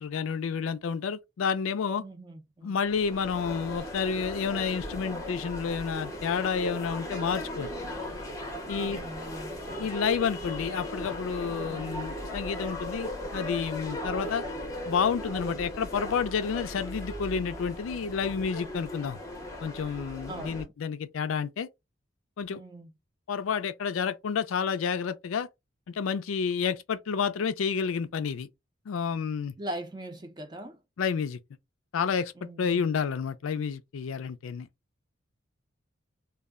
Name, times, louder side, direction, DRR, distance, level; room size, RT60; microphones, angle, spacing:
voice 1, 0.0-2.0 2.6-7.7 8.7-9.0 9.8-14.4 14.9-19.2 19.6-21.7 22.4-22.6 23.3-25.5 25.9-28.5 28.9-29.5 31.0-31.4 31.9-32.3 32.6-34.7, left 6 dB, 85° left, 0.4 m, -30 dB
voice 2, 2.0-2.8 8.8-9.6 11.6-12.0 20.3-20.7 22.5-22.9 29.6-30.8 32.4-32.9, right 1 dB, 20° right, 0.5 m, -41 dB
sound 1, 2.9-20.6, left 1 dB, 15° left, 0.6 m, -37 dB
2.3 x 2.1 x 3.5 m
head